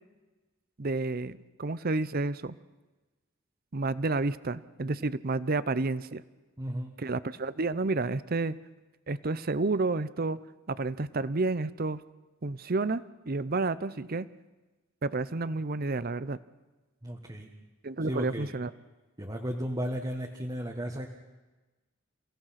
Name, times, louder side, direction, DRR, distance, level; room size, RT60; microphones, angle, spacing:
voice 1, 0.8-2.5 3.7-6.2 7.0-8.6 9.1-10.4 10.7-12.0 12.4-14.3 15.0-16.4 17.8-18.7, right 3 dB, 45° right, 17 dB, 0.7 m, -30 dB
voice 2, 6.6-7.0 17.0-17.5 18.1-18.5 19.2-21.1, equal, 20° right, 1 dB, 1.5 m, -34 dB
30.0 x 17.0 x 5.9 m, 1.2 s
head